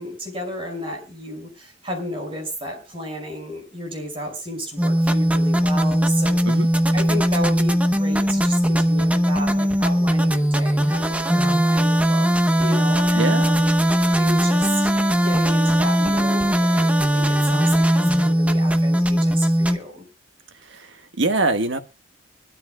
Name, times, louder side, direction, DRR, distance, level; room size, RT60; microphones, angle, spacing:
voice 1, 0.0-6.6 6.9-12.3 12.6-13.7 14.2-20.0, equal, 30° right, 5.6 m, -33 dB
sound 1, 4.8-19.8, equal, 5° right, 0.9 m, -19 dB
voice 2, 13.1-13.5 20.6-21.8, right 2 dB, 85° right, 1.4 m, -24 dB
24.5 x 13.0 x 2.2 m
head